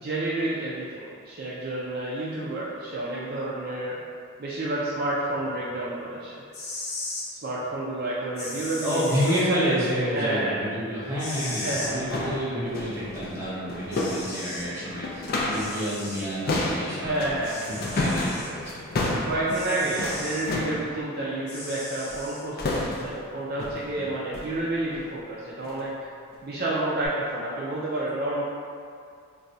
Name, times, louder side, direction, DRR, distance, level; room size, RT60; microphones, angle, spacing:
voice 1, 0.0-4.0 4.4-6.3 7.3-9.0 10.1-10.6 11.5-12.0 17.0-17.6 18.9-25.9 26.4-28.4, right 2 dB, 45° right, -7 dB, 0.4 m, -30 dB
sound 1, 6.4-7.3 8.4-9.4 11.2-11.9 13.4-13.5 13.9-14.7 15.5-16.3 17.4-18.5 19.5-20.5 21.5-22.4, left 2 dB, 80° left, 0.7 m, -37 dB
voice 2, 8.8-17.2 17.6-18.9 23.9-24.1, equal, 15° right, -10 dB, 0.8 m, -29 dB
sound 2, 11.0-11.1 11.6-20.9 22.1-22.3 22.6-23.2 23.6-23.9 24.3-24.6 24.9-25.1 25.6-25.8 26.3-26.4 27.0-27.1, left 2 dB, 45° left, 0.4 m, -31 dB
2.5 x 2.3 x 4.0 m, 2.3 s
head